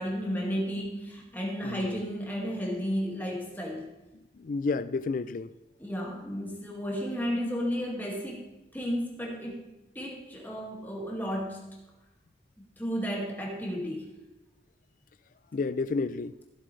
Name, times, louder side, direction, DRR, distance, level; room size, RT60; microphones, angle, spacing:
voice 1, 0.0-3.8 5.8-8.5 8.7-9.7 9.9-11.7 12.8-14.1, equal, 10° left, 2.0 m, -33 dB
voice 2, 1.7-2.0 4.4-5.5 15.5-16.3, left 4 dB, 50° left, 0.4 m, -30 dB
15.5 x 7.6 x 3.3 m
head